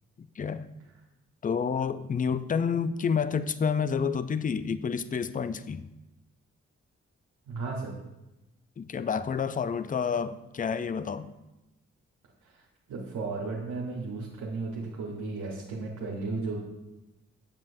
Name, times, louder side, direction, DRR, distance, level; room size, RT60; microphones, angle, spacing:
voice 1, 0.4-0.7 1.4-5.9 8.8-11.3, left 6 dB, 25° left, 13 dB, 0.4 m, -29 dB
voice 2, 7.5-8.0 12.4-12.6 12.9-16.6, right 3 dB, 90° right, -2 dB, 1.1 m, -34 dB
7.4 x 7.1 x 2.6 m, 0.97 s
cardioid pair, 50°, 30 cm